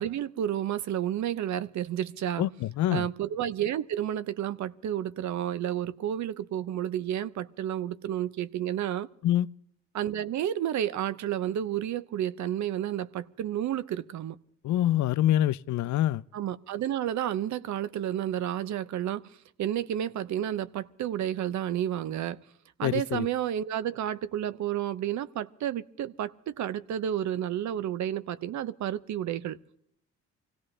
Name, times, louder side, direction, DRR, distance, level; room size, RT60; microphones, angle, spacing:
voice 1, 0.0-2.4 2.9-9.1 9.9-14.4 16.3-22.4 22.8-29.6, right 11 dB, 70° right, 0.8 m, -31 dB
voice 2, 2.4-3.1 9.2-9.5 14.6-16.2 22.8-23.3, left 13 dB, 70° left, 0.5 m, -25 dB
25.0 x 17.0 x 3.3 m
cardioid pair, 90°, 30 cm